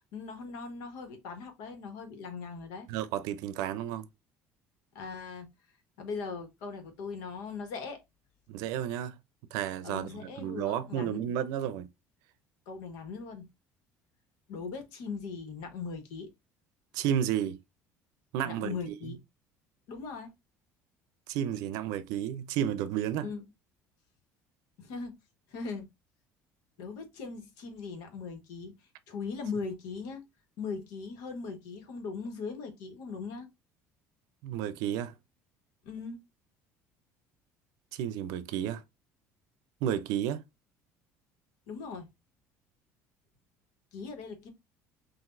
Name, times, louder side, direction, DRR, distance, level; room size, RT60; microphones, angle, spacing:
voice 1, 0.1-2.9 4.9-5.5 6.0-8.0 9.8-11.3 12.7-13.4 14.5-16.3 18.4-19.2 19.9-20.3 23.2-23.4 24.8-25.1 25.5-25.9 26.8-28.7 29.1-30.2 30.6-33.5 35.8-36.2 41.7-42.1 43.9-44.5, left 5 dB, 85° left, 1.4 m, -39 dB
voice 2, 2.9-4.1 8.5-9.2 9.5-11.9 16.9-17.6 18.3-19.1 21.3-23.3 34.4-35.1 37.9-38.8 39.8-40.4, right 10 dB, 75° right, 0.5 m, -32 dB
6.0 x 2.6 x 2.6 m
cardioid pair, 165°, 6 cm